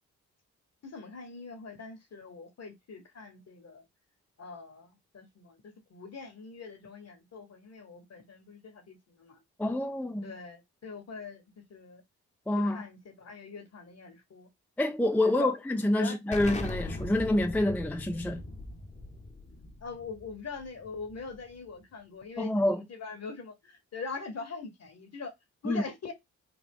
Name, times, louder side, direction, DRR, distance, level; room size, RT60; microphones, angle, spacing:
voice 1, 0.8-3.8 4.4-9.4 10.2-11.4 11.7-12.0 12.6-14.5 15.2-15.5 16.0-16.2 19.8-25.3 25.6-26.1, left 4 dB, 50° left, 1.3 m, -43 dB
voice 2, 9.6-10.3 12.5-12.8 14.8-18.4 22.4-22.8 25.6-25.8, left 1 dB, 5° left, 0.5 m, -27 dB
Explosion, 16.3-21.7, left 2 dB, 20° left, 1.0 m, -40 dB
3.6 x 2.3 x 3.6 m
hypercardioid pair, 45°, 34 cm